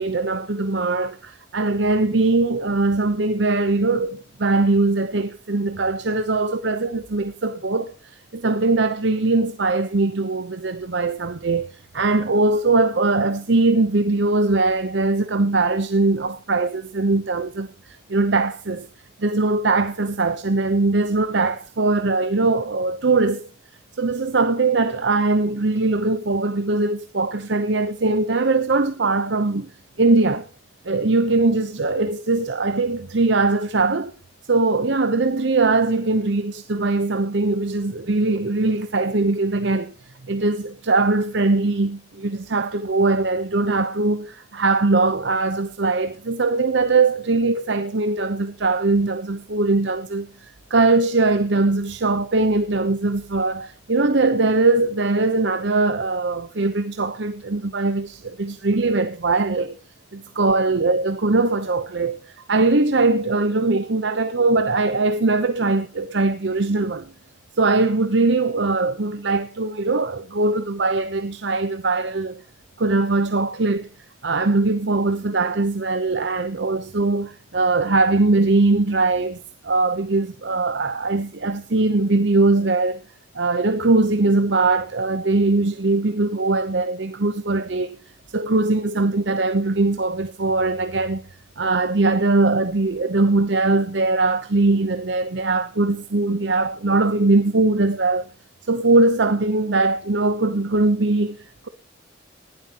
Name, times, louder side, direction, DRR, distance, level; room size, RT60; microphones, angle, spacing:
voice 1, 0.0-18.9 19.2-23.5 24.0-29.7 30.0-30.5 30.8-34.1 34.5-39.9 40.3-59.8 60.1-67.1 67.6-72.4 72.8-73.9 74.2-83.0 83.3-88.0 88.3-91.3 91.6-98.3 98.7-101.7, right 3 dB, 65° right, 0.9 m, -21 dB
19.5 x 11.5 x 3.0 m
head